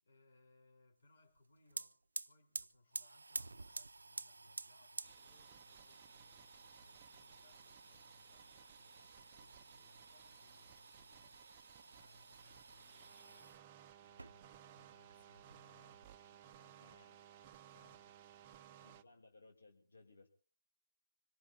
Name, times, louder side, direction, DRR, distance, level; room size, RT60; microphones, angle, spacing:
voice 1, 0.0-13.6 14.0-17.0 17.3-19.2, left 2 dB, 50° left, 4.3 m, -70 dB
sound 1, 1.4-1.5 1.7-13.6 14.1-14.8 15.1-16.1, right 3 dB, 85° right, 0.7 m, -51 dB
sound 2, 5.0-19.0, right 10 dB, 20° right, 0.8 m, -61 dB
voice 2, 16.8-17.2 18.8-20.3, left 3 dB, 75° left, 2.9 m, -63 dB
26.0 x 18.5 x 2.8 m
hypercardioid pair, 160°, 0 cm